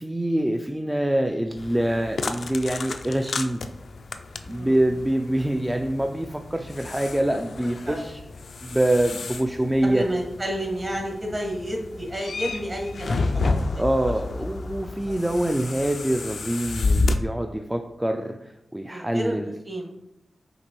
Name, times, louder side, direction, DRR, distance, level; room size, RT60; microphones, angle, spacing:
voice 1, 0.0-3.6 4.5-8.2 8.6-10.1 13.8-19.5, right 1 dB, 10° right, 4 dB, 0.3 m, -25 dB
sound 1, 1.6-17.2, left 3 dB, 75° left, 0.3 m, -31 dB
voice 2, 4.4-4.8 7.3-7.4 7.8-8.0 9.8-13.8 15.0-15.2 18.9-20.0, equal, 35° right, 0 dB, 1.4 m, -31 dB
5.1 x 2.9 x 3.0 m, 0.85 s
cardioid pair, 55°, 0 cm